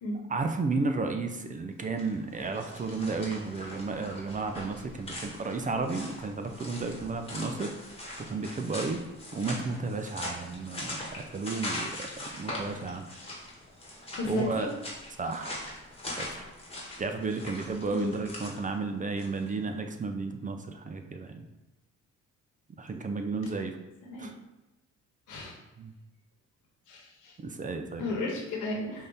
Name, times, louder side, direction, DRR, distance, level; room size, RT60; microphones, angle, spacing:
voice 1, 0.3-7.7 8.3-9.0 9.3-13.1 14.3-14.7 15.2-15.7 16.2-16.4 17.0-21.4 22.8-23.8 24.2-24.3 25.8-25.9 27.4-28.2, right 3 dB, 25° right, 6 dB, 0.4 m, -33 dB
sound 1, 1.9-19.5, left 1 dB, 20° left, 1.4 m, -41 dB
voice 2, 14.1-14.7 17.9-18.1 24.0-24.3 25.3-25.5 26.9-27.3 28.0-29.1, left 2 dB, 85° left, -1 dB, 1.2 m, -33 dB
5.3 x 2.7 x 3.4 m, 0.99 s
cardioid pair, 90°, 30 cm